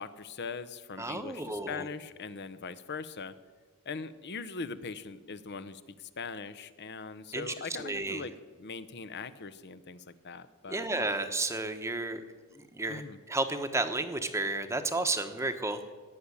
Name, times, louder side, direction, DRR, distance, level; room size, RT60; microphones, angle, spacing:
voice 1, 0.0-3.4 3.9-8.3 8.6-10.9 12.9-13.2, left 4 dB, 50° left, 13 dB, 0.8 m, -41 dB
voice 2, 1.0-1.9 7.3-8.3 10.7-12.2 12.5-13.0 13.3-15.8, right 2 dB, 15° right, 8 dB, 1.0 m, -32 dB
18.5 x 7.2 x 9.7 m, 1.4 s
head